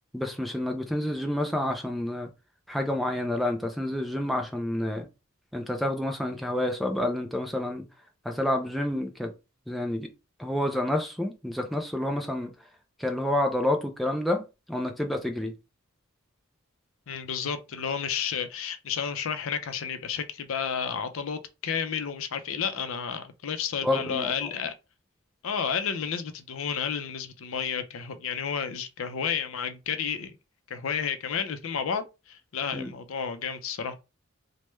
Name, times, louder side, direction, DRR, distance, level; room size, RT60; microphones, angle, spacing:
voice 1, 0.1-2.3 2.7-5.1 5.5-7.8 8.2-9.3 9.7-10.1 10.4-12.5 13.0-15.5 23.8-24.5 32.7-32.9, left 1 dB, ahead, 0.3 m, -29 dB
voice 2, 17.1-24.7 25.4-30.3 30.7-33.9, left 7 dB, 65° left, 0.5 m, -31 dB
3.2 x 2.1 x 3.0 m
head